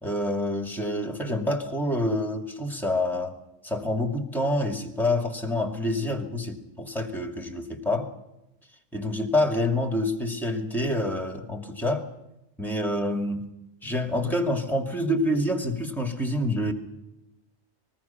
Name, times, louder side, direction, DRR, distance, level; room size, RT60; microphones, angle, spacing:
voice 1, 0.0-3.4 3.6-8.1 8.9-12.0 12.6-13.5 13.8-16.7, left 1 dB, ahead, 4 dB, 2.3 m, -27 dB
26.0 x 19.5 x 5.8 m, 0.91 s
omnidirectional pair, 1.4 m